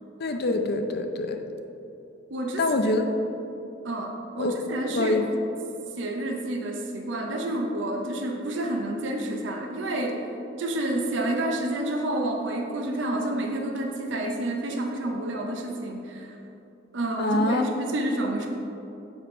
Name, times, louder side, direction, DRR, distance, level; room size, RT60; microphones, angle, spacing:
voice 1, 0.2-1.4 2.6-3.0 4.4-4.5 4.9-5.2 17.2-17.6, left 2 dB, 55° left, 6 dB, 0.6 m, -25 dB
voice 2, 2.3-2.6 3.8-5.2 6.0-10.2 10.6-16.4 16.9-18.5, right 1 dB, 70° right, 2 dB, 0.7 m, -29 dB
7.7 x 4.0 x 5.5 m, 2.9 s
head